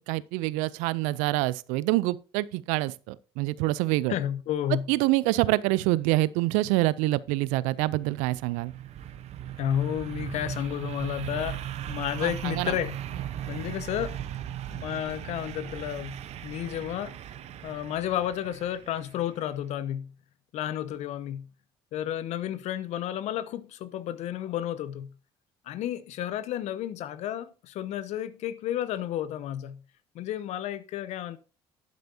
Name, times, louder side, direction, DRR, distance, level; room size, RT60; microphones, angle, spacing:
voice 1, 0.1-4.2 4.9-8.7 12.2-12.7, right 18 dB, 75° right, 0.5 m, -26 dB
voice 2, 4.1-4.9 9.6-13.0 13.4-14.2 14.7-16.2 16.4-17.1 17.6-20.1 20.5-21.5 21.9-25.1 25.7-29.8 30.1-31.4, left 11 dB, 60° left, 0.8 m, -32 dB
sound 1, 7.7-19.4, right 11 dB, 55° right, 0.9 m, -38 dB
11.5 x 9.3 x 2.8 m
hypercardioid pair, 60°, 13 cm